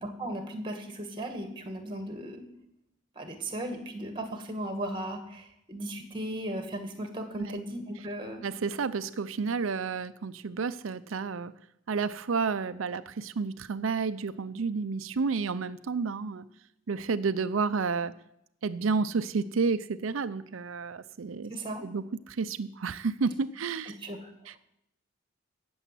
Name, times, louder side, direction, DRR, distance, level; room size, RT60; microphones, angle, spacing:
voice 1, 0.0-2.4 3.2-8.4 21.5-21.9 24.0-24.3, right 1 dB, 25° right, 6 dB, 1.9 m, -36 dB
voice 2, 8.4-11.5 11.9-16.4 16.9-18.1 18.6-21.5 21.8-24.0 24.5-24.6, right 4 dB, 85° right, 12 dB, 0.5 m, -31 dB
17.0 x 7.0 x 7.7 m, 0.79 s
head